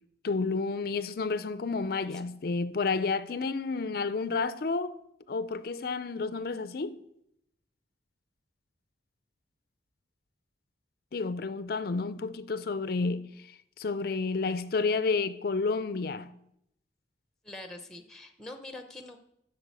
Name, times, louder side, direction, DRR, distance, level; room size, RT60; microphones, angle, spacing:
voice 1, 0.2-5.0 5.3-7.0 11.1-16.3, left 4 dB, 55° left, 0.4 m, -30 dB
voice 2, 17.4-19.2, left 2 dB, 5° left, 0.8 m, -44 dB
8.8 x 6.5 x 8.2 m
head